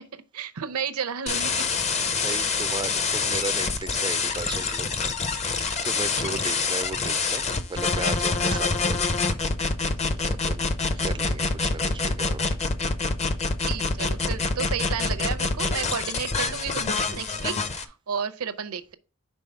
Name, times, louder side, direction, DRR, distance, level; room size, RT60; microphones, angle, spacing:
voice 1, 0.0-1.5 6.5-6.7 8.4-8.7 10.0-10.3 13.7-18.9, right 7 dB, 75° right, 0.7 m, -33 dB
sound 1, 1.3-17.8, left 4 dB, 30° left, 0.5 m, -26 dB
voice 2, 2.2-4.9 5.8-7.4 7.7-9.0 10.1-10.7 11.0-12.4, right 4 dB, 20° right, 0.3 m, -35 dB
5.4 x 3.8 x 5.5 m
head